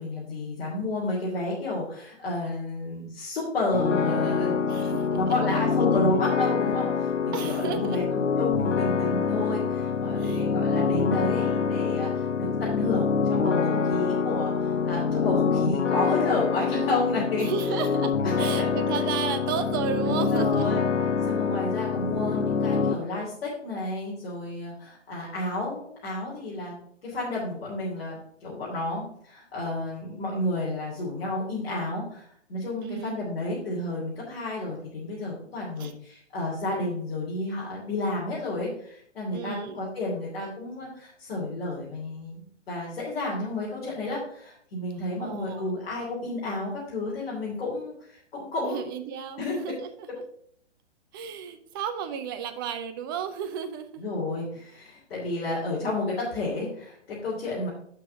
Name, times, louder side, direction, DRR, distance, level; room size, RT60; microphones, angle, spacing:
voice 1, 0.0-4.6 5.1-17.5 18.4-18.7 20.1-20.8 21.2-26.7 27.0-48.8 49.4-49.6 54.0-57.7, left 2 dB, 55° left, -7 dB, 3.1 m, -31 dB
sound 1, 3.7-22.9, left 5 dB, 90° left, 0.7 m, -26 dB
voice 2, 4.6-5.2 5.5-5.6 5.8-6.0 7.3-8.0 10.1-10.5 17.4-20.7 32.8-33.1 35.8-35.9 39.3-39.8 45.2-45.7 48.6-49.9 51.1-54.0, right 8 dB, 20° right, 8 dB, 0.5 m, -33 dB
6.8 x 5.6 x 5.6 m, 0.66 s
figure-of-eight pair, 125°, 36 cm